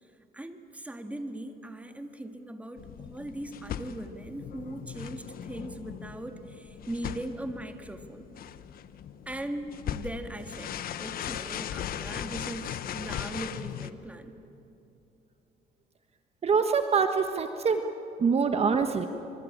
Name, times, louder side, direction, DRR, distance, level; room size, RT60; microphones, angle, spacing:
voice 1, 0.3-8.2 9.3-14.4, right 1 dB, 10° right, 6 dB, 1.9 m, -39 dB
sound 1, 2.8-13.9, left 10 dB, 60° left, 1.1 m, -39 dB
voice 2, 16.4-17.8 18.2-19.1, right 5 dB, 35° right, 7 dB, 1.4 m, -24 dB
25.5 x 24.0 x 8.8 m, 2.9 s
cardioid pair, 110°, 17 cm